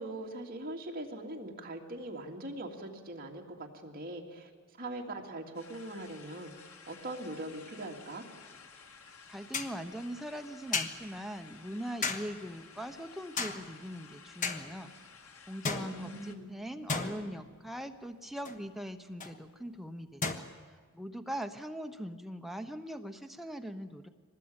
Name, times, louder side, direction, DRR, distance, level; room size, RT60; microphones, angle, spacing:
voice 1, 0.0-4.5 4.8-8.2 15.8-16.5, right 1 dB, 45° right, 0 dB, 2.7 m, -41 dB
sound 1, 5.5-16.3, left 5 dB, 85° left, 2.0 m, -54 dB
sound 2, 8.4-8.5 9.5-9.8 10.7-11.2 12.0-12.5 13.4-13.9 14.4-14.9 15.6-16.4 16.9-17.7 18.4-18.7 19.2-19.4 20.2-20.3, left 4 dB, 40° left, 1.4 m, -35 dB
voice 2, 9.3-14.9 15.5-24.1, equal, ahead, 5 dB, 0.9 m, -41 dB
24.0 x 19.5 x 8.8 m, 1.5 s
head